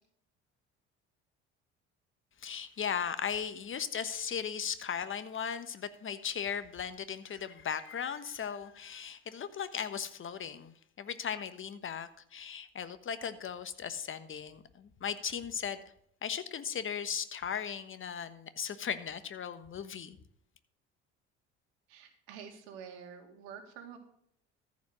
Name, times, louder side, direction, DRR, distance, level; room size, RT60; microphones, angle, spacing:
voice 1, 2.4-15.8 16.2-20.2, left 7 dB, 35° left, 12 dB, 1.2 m, -37 dB
voice 2, 21.9-24.0, right 7 dB, 75° right, 6 dB, 2.1 m, -48 dB
14.0 x 5.4 x 6.1 m, 0.68 s
hypercardioid pair, 65°, 35 cm